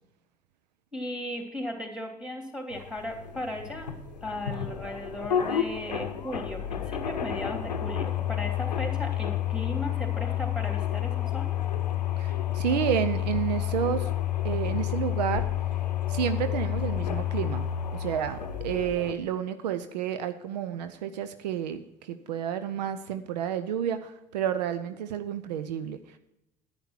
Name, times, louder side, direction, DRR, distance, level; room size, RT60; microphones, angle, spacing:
voice 1, 0.9-3.9 4.2-11.6, left 1 dB, 5° right, 3 dB, 3.2 m, -36 dB
sound 1, 2.7-19.1, left 11 dB, 90° left, 0.7 m, -30 dB
voice 2, 12.2-14.1 14.4-15.5 16.1-26.0, right 9 dB, 80° right, 11 dB, 0.6 m, -30 dB
10.0 x 9.6 x 4.4 m, 0.88 s
figure-of-eight pair, 60°, 21 cm